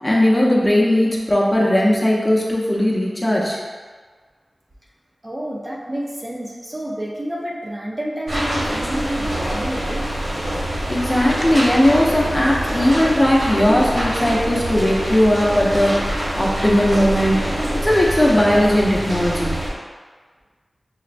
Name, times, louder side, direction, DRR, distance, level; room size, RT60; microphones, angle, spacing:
voice 1, 0.0-3.6 10.9-16.0 16.3-17.6 17.8-19.6, left 1 dB, 20° left, -4 dB, 0.7 m, -18 dB
voice 2, 5.2-10.0, right 1 dB, 30° right, -4 dB, 0.5 m, -29 dB
sound 1, 8.3-19.7, equal, 85° right, 1.3 m, -25 dB
5.5 x 2.1 x 2.5 m, 1.5 s
wide cardioid pair, 85°, 0 cm